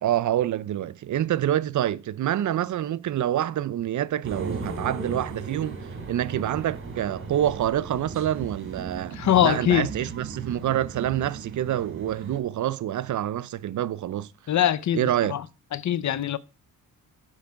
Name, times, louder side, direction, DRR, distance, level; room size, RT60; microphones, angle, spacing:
voice 1, 0.0-5.8 6.1-9.2 9.4-14.3 14.9-15.4, right 12 dB, 60° right, 0.5 m, -27 dB
sound 1, 4.2-12.4, right 4 dB, 40° right, 3.8 m, -37 dB
voice 2, 9.1-9.9 14.5-15.4 15.7-16.4, left 11 dB, 55° left, 0.6 m, -22 dB
7.4 x 4.6 x 5.7 m
cardioid pair, 90°, 34 cm